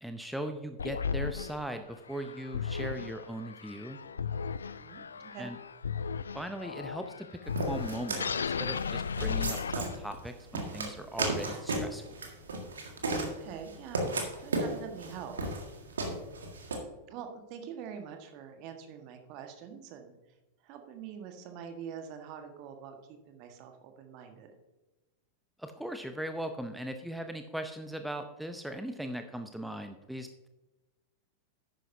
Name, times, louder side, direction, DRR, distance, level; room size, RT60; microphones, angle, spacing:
voice 1, 0.0-4.0 5.4-5.6 6.3-7.3 7.7-8.2 8.6-12.0 25.6-30.5, right 1 dB, ahead, 6 dB, 0.6 m, -39 dB
sound 1, 0.8-10.2, left 6 dB, 70° left, 0.3 m, -36 dB
voice 2, 4.8-5.5 13.2-15.6 15.9-16.1 17.1-20.1 20.6-24.5, right 7 dB, 40° right, 5 dB, 1.5 m, -45 dB
sound 2, 7.6-16.8, right 2 dB, 70° right, 1.7 m, -34 dB
11.5 x 9.1 x 2.7 m, 1.1 s
figure-of-eight pair, 90°, 0 cm